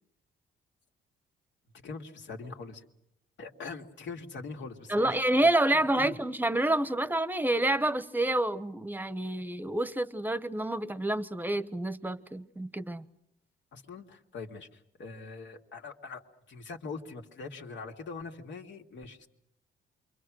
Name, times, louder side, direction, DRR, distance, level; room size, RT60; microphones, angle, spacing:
voice 1, 1.7-2.8 3.4-6.2 13.7-16.2 16.5-19.3, left 4 dB, 65° left, 2.5 m, -43 dB
voice 2, 4.9-13.0, right 1 dB, 10° right, 1.1 m, -28 dB
28.5 x 24.0 x 6.4 m
cardioid pair, 90°, 20 cm